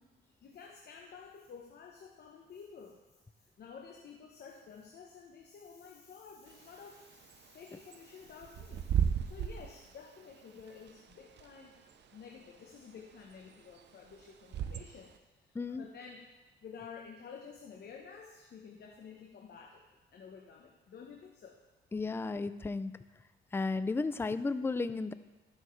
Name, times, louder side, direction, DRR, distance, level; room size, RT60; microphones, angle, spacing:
voice 1, 0.4-3.0 3.4-11.8 12.1-15.1 15.4-19.8 20.1-21.6, left 6 dB, 55° left, 1 dB, 1.0 m, -51 dB
Bird / Wind, 6.5-15.2, right 8 dB, 60° right, 0.7 m, -37 dB
voice 2, 21.9-22.9 23.5-25.1, left 3 dB, 10° left, 13 dB, 0.3 m, -33 dB
12.5 x 6.5 x 3.2 m, 1.1 s
cardioid pair, 90°, 20 cm